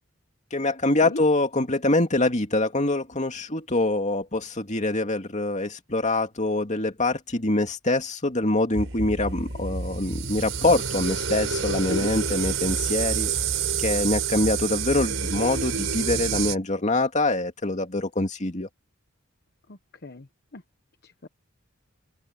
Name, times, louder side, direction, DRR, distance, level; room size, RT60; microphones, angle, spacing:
voice 1, 0.5-13.3 13.8-18.7, left 2 dB, 35° left, 2.6 m, -24 dB
sound 1, 8.7-16.6, right 6 dB, 80° right, 4.9 m, -28 dB
voice 2, 19.7-20.3 20.5-20.6 21.0-21.3, left 2 dB, 50° left, 1.1 m, -36 dB
open air
head